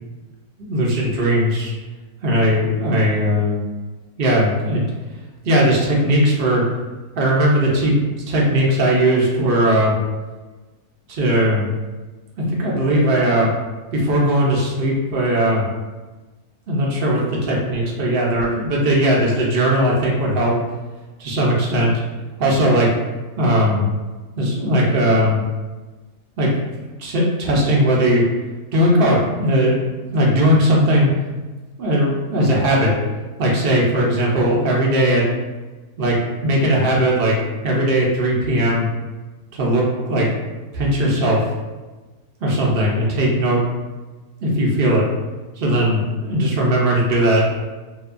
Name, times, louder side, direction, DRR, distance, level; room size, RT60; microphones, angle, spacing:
voice 1, 0.7-1.7 2.2-3.6 4.2-4.9 5.4-6.6 7.2-7.9 8.3-10.0 11.1-11.7 12.5-13.5 13.9-15.6 16.7-20.5 21.2-21.9 22.4-22.9 23.4-23.9 24.4-25.4 26.4-26.5 27.0-28.2 28.7-29.7 30.1-31.1 31.8-33.0 33.4-35.3 36.0-36.2 36.4-37.4 37.6-38.9 39.5-40.3 40.7-41.4 42.4-43.6 44.4-45.0 45.6-47.4, equal, 75° right, -3 dB, 0.5 m, -18 dB
2.7 x 2.2 x 2.4 m, 1.2 s
omnidirectional pair, 1.6 m